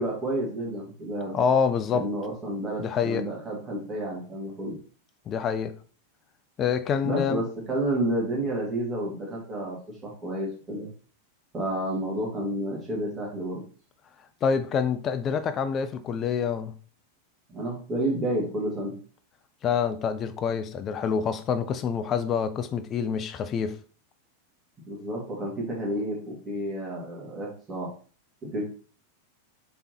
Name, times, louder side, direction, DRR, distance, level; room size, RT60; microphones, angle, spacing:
voice 1, 0.0-1.4 1.9-4.8 7.0-10.9 11.5-13.6 17.5-18.9 24.9-27.9 28.4-28.8, right 1 dB, 20° right, 1.5 m, -30 dB
voice 2, 1.3-2.1 2.8-3.2 5.3-5.7 6.6-7.4 14.4-16.7 19.6-23.8, left 6 dB, 30° left, 0.4 m, -26 dB
3.3 x 3.3 x 2.7 m
figure-of-eight pair, 90°, 0 cm